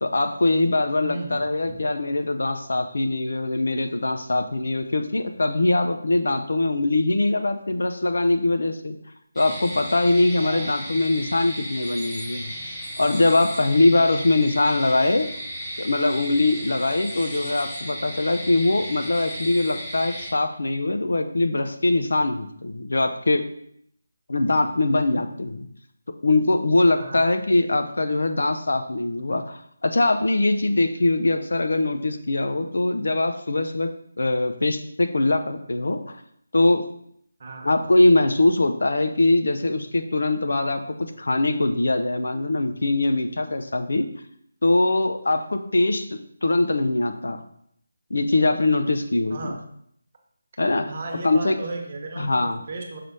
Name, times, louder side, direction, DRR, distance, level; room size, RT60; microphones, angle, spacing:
voice 1, 0.0-8.9 9.4-12.5 13.0-15.3 15.8-23.4 24.3-25.7 26.2-33.9 34.2-36.2 36.5-36.8 37.6-44.1 44.6-46.1 46.4-47.4 48.1-49.5 50.6-50.9 51.2-51.6 52.2-52.6, left 2 dB, 75° left, 7 dB, 0.7 m, -22 dB
voice 2, 1.0-1.8 10.4-10.7 27.0-27.3 37.4-37.7 49.3-49.6 50.9-53.0, right 3 dB, 35° right, 1 dB, 1.0 m, -35 dB
sound 1, 9.4-20.3, equal, 5° left, 0.9 m, -35 dB
5.9 x 3.3 x 5.3 m, 0.69 s
figure-of-eight pair, 175°, 0 cm